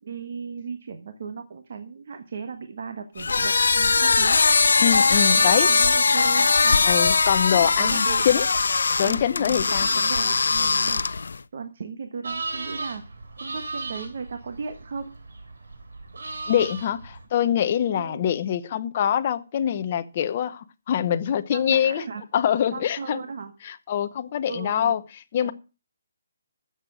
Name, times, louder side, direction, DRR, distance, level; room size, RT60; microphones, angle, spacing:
voice 1, 0.0-4.4 5.3-6.9 7.5-8.3 9.0-13.0 13.4-15.1 17.9-18.3 21.5-22.2 22.7-23.5 24.5-25.0 25.4-25.5, right 5 dB, 50° right, 1.4 m, -36 dB
sound 1, 3.2-11.4, left 4 dB, 80° left, 0.5 m, -20 dB
voice 2, 4.8-5.7 6.8-8.5 9.0-9.9 16.5-22.0 22.3-23.2 23.6-25.5, left 9 dB, 30° left, 0.8 m, -24 dB
sound 2, 12.2-17.3, right 3 dB, 90° right, 3.9 m, -36 dB
13.5 x 7.9 x 6.2 m
hypercardioid pair, 175°, 0 cm